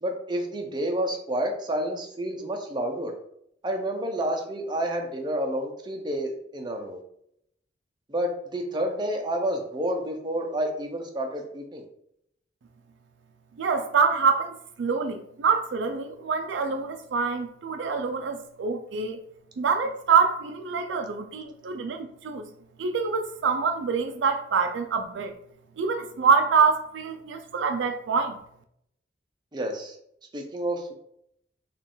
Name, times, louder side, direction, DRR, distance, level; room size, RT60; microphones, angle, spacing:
voice 1, 0.0-3.1 3.6-7.0 8.1-11.8 29.5-29.9 30.3-30.9, right 1 dB, 25° right, 2 dB, 0.6 m, -29 dB
voice 2, 13.6-19.2 19.6-22.5 22.8-25.3 25.8-28.4, right 5 dB, 75° right, 6 dB, 0.4 m, -25 dB
3.8 x 2.4 x 3.7 m, 0.72 s
head